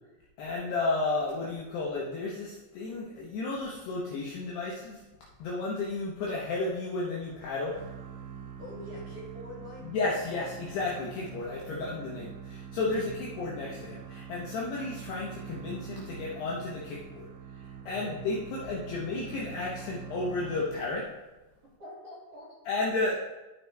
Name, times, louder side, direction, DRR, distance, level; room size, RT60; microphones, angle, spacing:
voice 1, 0.4-5.0 5.4-7.9 9.8-17.3 17.9-21.1 22.7-23.1, left 3 dB, 75° left, -5 dB, 2.5 m, -33 dB
sound 1, 7.7-21.1, right 7 dB, 80° right, 3.1 m, -44 dB
voice 2, 8.6-9.9 12.7-13.0 17.8-18.2 21.8-22.5, left 1 dB, 35° right, -8 dB, 2.5 m, -44 dB
14.5 x 5.2 x 3.4 m, 1.1 s
omnidirectional pair, 5.9 m